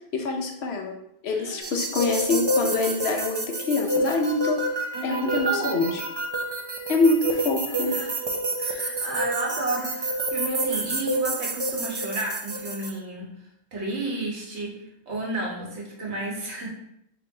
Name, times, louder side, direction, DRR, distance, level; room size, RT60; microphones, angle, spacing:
voice 1, 0.1-0.9 1.2-4.6 5.0-6.0 6.9-8.0, left 3 dB, 70° left, 3 dB, 0.9 m, -25 dB
voice 2, 1.3-1.8 4.9-6.1 7.9-8.2 8.6-13.3 13.7-14.8 15.1-16.7, right 2 dB, 75° right, -2 dB, 1.4 m, -32 dB
sound 1, 1.6-12.9, right 1 dB, 35° right, 0.4 m, -28 dB
4.0 x 3.3 x 3.7 m, 0.78 s
omnidirectional pair, 1.2 m